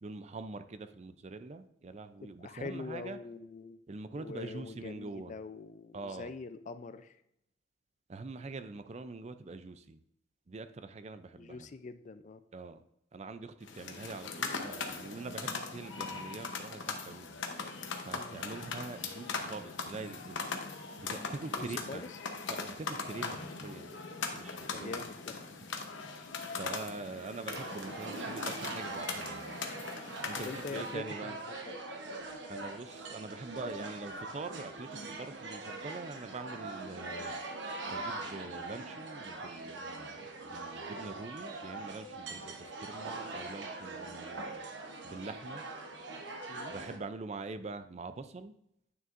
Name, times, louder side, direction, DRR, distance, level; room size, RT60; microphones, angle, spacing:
voice 1, 0.0-3.2 3.9-5.3 5.9-6.3 8.1-10.0 10.5-11.7 12.5-12.8 13.1-17.4 18.0-20.4 21.0-22.0 22.5-23.9 24.3-25.0 26.1-26.2 26.6-29.6 30.1-31.4 32.5-37.4 37.8-44.6 45.0-45.6 46.7-48.6, right 3 dB, 35° right, 11 dB, 0.4 m, -44 dB
voice 2, 2.2-3.8 4.1-7.1 11.4-12.4 18.1-18.4 21.6-22.1 24.6-25.4 30.4-31.4 31.6-31.8 46.5-46.7, left 3 dB, 40° left, 12 dB, 0.4 m, -44 dB
sound 1, 13.6-30.9, left 4 dB, 80° left, 0.9 m, -40 dB
sound 2, 27.5-47.0, right 2 dB, 70° right, 1.0 m, -42 dB
9.3 x 6.2 x 2.5 m, 0.77 s
head